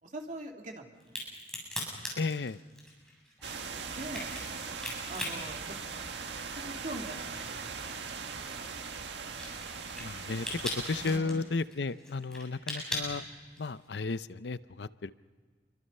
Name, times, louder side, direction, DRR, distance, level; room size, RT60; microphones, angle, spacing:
voice 1, 0.0-1.2 3.9-4.3 5.1-5.8 6.5-8.0 8.3-8.7 11.0-11.4, right 1 dB, 50° right, 2 dB, 2.8 m, -43 dB
Crack, 1.0-6.5 6.9-13.9, left 1 dB, 5° left, 7.5 m, -40 dB
voice 2, 2.2-2.6 10.0-13.2 13.6-15.1, left 4 dB, 70° left, 15 dB, 0.6 m, -34 dB
sound 1, 3.4-11.2, right 5 dB, 80° right, 1.8 m, -40 dB
28.0 x 24.0 x 5.5 m, 1.5 s
head